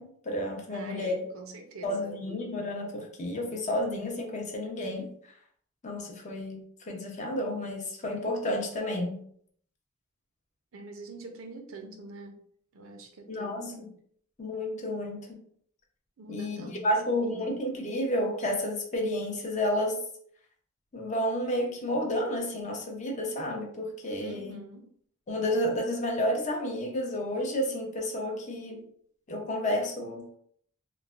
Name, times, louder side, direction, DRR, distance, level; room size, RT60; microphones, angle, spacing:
voice 1, 0.0-1.3 1.8-5.1 5.8-6.6 6.9-9.2 13.3-13.8 14.4-15.4 16.3-20.0 20.9-24.6 25.3-28.8 29.3-30.4, left 1 dB, 35° left, 1 dB, 0.6 m, -31 dB
voice 2, 0.7-2.2 10.7-12.4 12.7-14.0 16.2-17.5 24.2-24.9, right 2 dB, 75° right, 3 dB, 0.5 m, -45 dB
3.0 x 2.1 x 2.4 m, 0.62 s
head